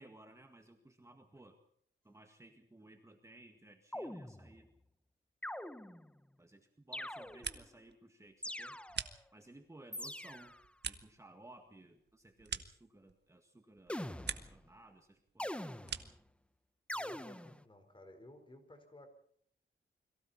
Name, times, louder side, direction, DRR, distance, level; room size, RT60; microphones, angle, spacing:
voice 1, 0.0-1.6 2.0-4.7 6.4-8.8 9.3-10.5 10.9-15.7, right 1 dB, 15° right, 4 dB, 1.9 m, -58 dB
sound 1, 3.9-4.7 5.4-6.2 6.9-7.7 8.4-9.2 9.9-10.7 13.9-14.7 15.4-16.2 16.9-17.6, left 1 dB, 5° left, 0.8 m, -44 dB
sound 2, 7.1-7.9 8.2-9.7 10.1-13.4 13.7-14.7 15.0-16.3, right 6 dB, 55° right, 1.5 m, -46 dB
voice 2, 16.9-19.1, left 1 dB, 25° left, 7 dB, 4.4 m, -56 dB
29.5 x 22.5 x 4.3 m, 0.63 s
wide cardioid pair, 135°, 21 cm